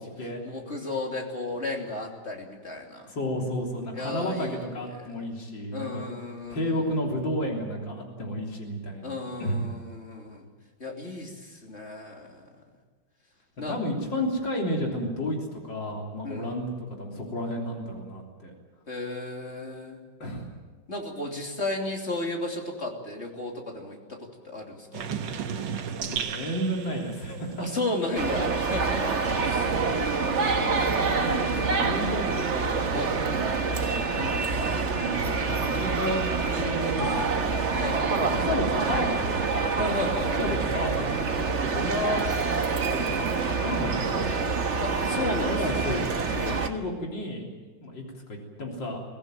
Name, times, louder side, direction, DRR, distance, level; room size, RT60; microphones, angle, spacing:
voice 1, 0.4-3.1 4.0-4.7 5.7-6.8 9.0-10.5 10.8-12.5 13.6-13.8 16.2-16.5 18.9-20.0 20.9-25.0 27.6-29.8 31.2-31.6 32.9-33.2 34.2-34.5 37.8-38.1 39.8-40.5 44.8-45.8, left 2 dB, 35° left, 1 dB, 3.3 m, -34 dB
voice 2, 3.1-6.1 6.5-9.6 13.7-18.5 20.2-20.5 26.1-27.7 29.0-31.4 31.7-32.3 32.5-34.2 34.5-36.3 36.5-37.6 38.2-39.4 39.8-40.0 40.4-41.1 41.5-43.3 43.6-44.3 45.5-47.4 47.8-48.0 48.3-49.0, left 1 dB, 75° left, 0 dB, 4.2 m, -32 dB
sound 1, 24.9-30.3 30.6-32.3, right 7 dB, 75° right, 1.8 m, -37 dB
sound 2, 28.2-46.7, right 4 dB, 40° right, 1.5 m, -26 dB
23.5 x 17.0 x 9.2 m, 1.3 s
omnidirectional pair, 2.0 m